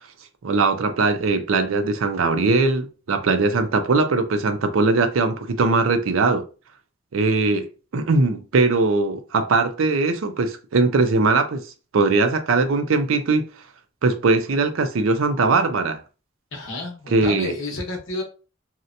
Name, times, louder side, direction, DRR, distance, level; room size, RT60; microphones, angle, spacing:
voice 1, 0.4-6.4 7.1-7.7 7.9-11.6 11.9-13.5 14.0-16.0 17.1-17.5, right 3 dB, 90° right, 0.5 m, -20 dB
voice 2, 16.5-18.2, left 2 dB, 75° left, 0.8 m, -30 dB
2.7 x 2.1 x 2.5 m
head